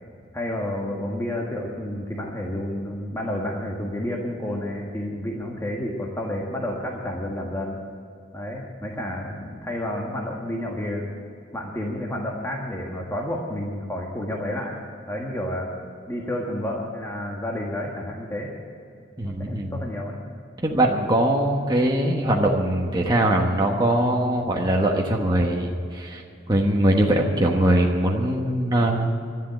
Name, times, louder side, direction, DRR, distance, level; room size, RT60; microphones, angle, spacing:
voice 1, 0.3-7.8 8.3-11.1 11.5-14.8 15.1-15.7 16.1-18.5 19.2-20.2, left 1 dB, 15° left, -1 dB, 1.7 m, -30 dB
voice 2, 19.2-19.7 20.6-29.1, right 1 dB, 20° right, 0 dB, 1.2 m, -21 dB
13.0 x 11.0 x 8.9 m, 2.5 s
head